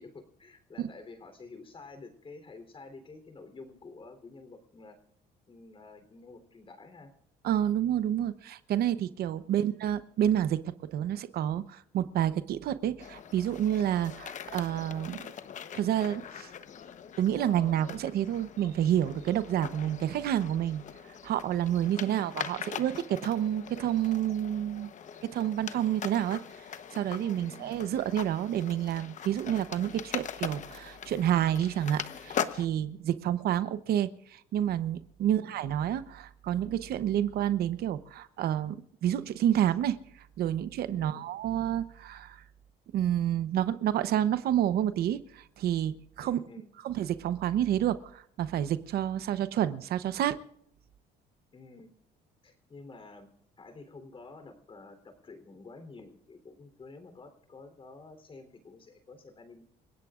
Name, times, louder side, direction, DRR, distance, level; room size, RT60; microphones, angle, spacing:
voice 1, 0.0-5.0 5.5-7.1 27.4-27.7 35.2-35.5 41.0-41.3 46.2-46.7 51.5-51.9 52.4-53.3 53.6-59.6, left 3 dB, 30° left, 8 dB, 3.5 m, -50 dB
voice 2, 7.4-15.2 15.7-16.5 17.2-20.8 21.2-24.9 25.3-26.4 26.9-40.0 40.4-42.4 42.9-46.4 46.8-50.4, right 11 dB, 65° right, 13 dB, 0.9 m, -29 dB
sound 1, 13.0-32.7, left 8 dB, 45° left, 1.0 m, -41 dB
29.0 x 16.5 x 2.5 m, 0.70 s
cardioid pair, 110°, 17 cm